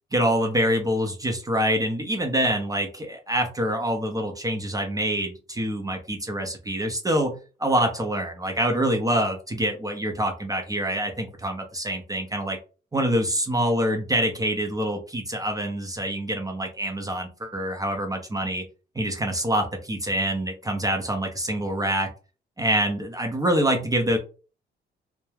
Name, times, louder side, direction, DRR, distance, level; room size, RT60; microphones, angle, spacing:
voice 1, 0.1-12.6 12.9-18.6 19.0-22.1 22.6-24.2, right 1 dB, 15° right, 4 dB, 0.6 m, -25 dB
2.3 x 2.1 x 3.1 m, 0.35 s
cardioid pair, 90°, 20 cm